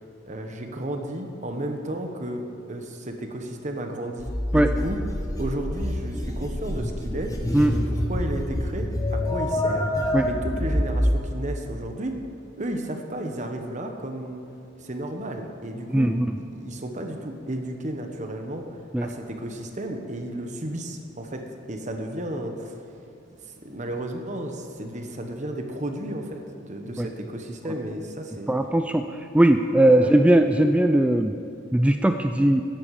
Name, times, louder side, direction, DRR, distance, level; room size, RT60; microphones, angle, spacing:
voice 1, 0.3-2.4 2.7-4.3 4.5-7.3 7.7-9.9 10.2-12.2 12.6-14.4 14.8-18.7 19.0-21.4 21.7-22.8 23.6-28.5 30.0-30.2, right 1 dB, 40° right, 4 dB, 1.2 m, -33 dB
sound 1, 4.2-11.1, left 1 dB, 20° left, 1.2 m, -26 dB
voice 2, 15.9-16.3 18.9-19.1 27.0-27.1 28.5-29.0 29.3-31.3 31.7-32.6, right 1 dB, 5° right, 7 dB, 0.3 m, -19 dB
15.5 x 10.5 x 4.9 m, 2.5 s
head